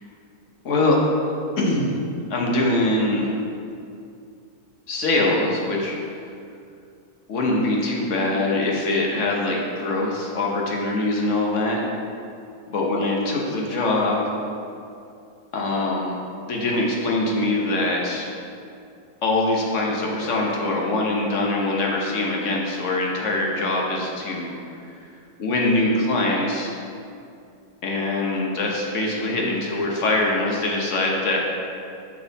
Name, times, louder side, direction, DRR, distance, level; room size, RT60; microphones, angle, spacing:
voice 1, 0.6-1.0 1.6-1.9 2.3-3.3 4.9-6.0 7.3-11.8 12.7-14.3 15.5-16.2 16.5-18.3 19.2-24.6 25.4-26.7 27.8-31.4, left 2 dB, 55° left, -2 dB, 1.3 m, -23 dB
6.3 x 5.5 x 4.1 m, 2.5 s
omnidirectional pair, 1.7 m